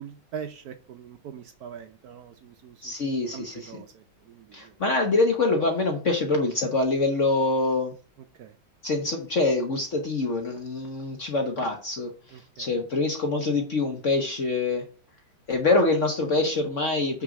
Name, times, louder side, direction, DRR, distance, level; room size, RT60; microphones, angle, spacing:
voice 1, 0.0-2.9 3.3-4.7 8.4-8.5 12.3-12.7, right 8 dB, 75° right, 0.9 m, -42 dB
voice 2, 2.8-3.8 4.5-7.9 8.8-12.1 12.6-14.8 15.5-17.2, left 3 dB, 50° left, 1.0 m, -25 dB
6.1 x 3.8 x 6.2 m
omnidirectional pair, 2.2 m